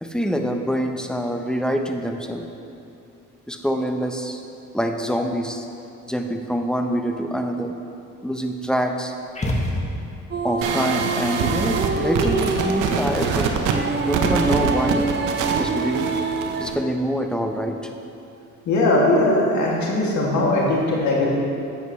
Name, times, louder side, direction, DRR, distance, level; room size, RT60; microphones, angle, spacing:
voice 1, 0.0-2.5 3.5-4.4 4.7-5.6 6.1-7.7 8.2-9.1 10.4-13.5 14.1-15.0 15.6-16.1 16.6-17.8, equal, ahead, 4 dB, 0.8 m, -25 dB
sound 1, 9.3-10.4, left 1 dB, 20° left, 1.5 m, -26 dB
sound 2, 10.3-16.7, right 4 dB, 35° right, 0.7 m, -25 dB
sound 3, 10.6-16.7, right 5 dB, 85° right, 0.9 m, -25 dB
voice 2, 18.7-21.3, left 2 dB, 70° left, -4 dB, 2.3 m, -19 dB
12.0 x 8.1 x 3.2 m, 2.7 s
cardioid pair, 90°, 30 cm